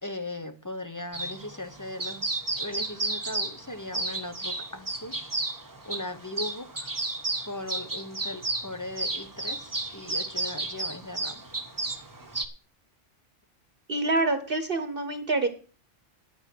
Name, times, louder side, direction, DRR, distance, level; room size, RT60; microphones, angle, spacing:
voice 1, 0.0-5.5 5.8-6.9 7.5-11.4, left 1 dB, 20° left, 0.6 m, -38 dB
sound 1, 1.1-12.5, right 2 dB, 20° right, 1.0 m, -33 dB
voice 2, 13.9-15.5, right 2 dB, 50° right, 1.2 m, -26 dB
9.4 x 9.0 x 6.0 m
omnidirectional pair, 1.2 m